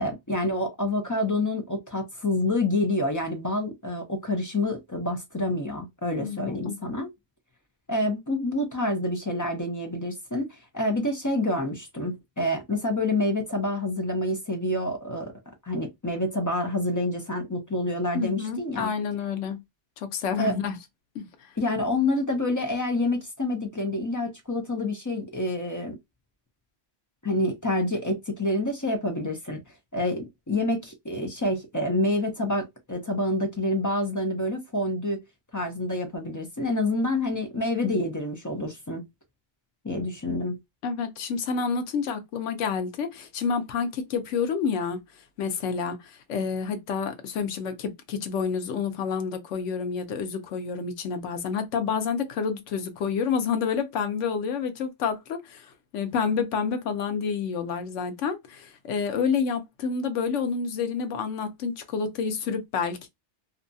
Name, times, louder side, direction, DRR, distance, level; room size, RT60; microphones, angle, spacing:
voice 1, 0.0-7.1 7.9-10.5 10.7-15.3 15.7-18.9 20.4-20.5 21.6-26.0 27.2-29.6 29.9-35.2 35.5-39.0 39.8-40.6, left 1 dB, 30° left, 0.3 m, -27 dB
voice 2, 6.2-6.8 18.1-19.6 20.0-20.8 21.1-21.5 40.8-45.0 45.4-63.1, left 6 dB, 85° left, 1.0 m, -29 dB
2.7 x 2.3 x 2.5 m
omnidirectional pair, 1.2 m